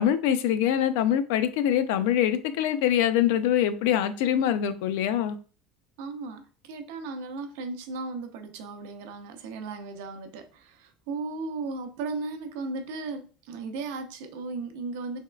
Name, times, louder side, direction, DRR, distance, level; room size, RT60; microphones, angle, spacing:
voice 1, 0.0-5.4, left 10 dB, 85° left, 0.3 m, -24 dB
voice 2, 6.0-15.2, right 3 dB, 85° right, 0.5 m, -36 dB
3.4 x 3.2 x 2.2 m
cardioid pair, 165°, 0 cm